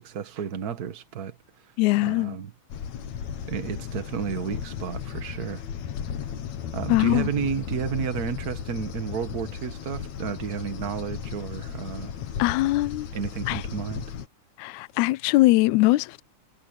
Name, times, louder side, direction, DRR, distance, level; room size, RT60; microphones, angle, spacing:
voice 1, 0.0-1.4 2.0-2.5 3.5-5.6 6.7-12.1 12.6-12.7 13.1-14.1, right 7 dB, 45° right, 1.2 m, -32 dB
voice 2, 1.8-2.4 6.9-7.3 12.4-13.1 13.5-13.6 14.6-16.2, left 19 dB, 80° left, 1.9 m, -21 dB
sound 1, 2.7-14.3, left 8 dB, 65° left, 2.7 m, -35 dB
omnidirectional pair, 3.7 m